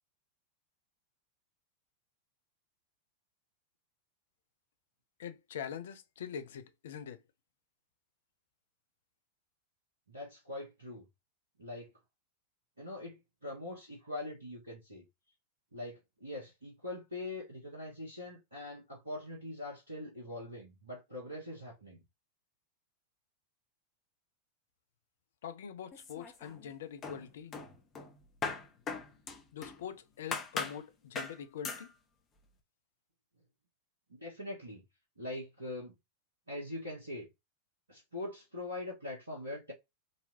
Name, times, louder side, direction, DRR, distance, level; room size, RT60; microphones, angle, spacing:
voice 1, 5.2-7.2 25.4-27.6 29.5-31.9, left 8 dB, 60° left, 0.5 m, -44 dB
voice 2, 10.1-11.0 11.6-11.9 12.8-15.0 15.7-22.0 34.1-34.8 35.2-36.0 36.5-37.3 37.9-39.7, left 2 dB, 80° right, 1.4 m, -43 dB
sound 1, 25.9-26.7 27.0-29.8 30.3-30.8 31.2-31.4 31.6-31.9, left 4 dB, 25° left, 1.0 m, -39 dB
3.9 x 2.8 x 2.8 m
figure-of-eight pair, 90°, 0 cm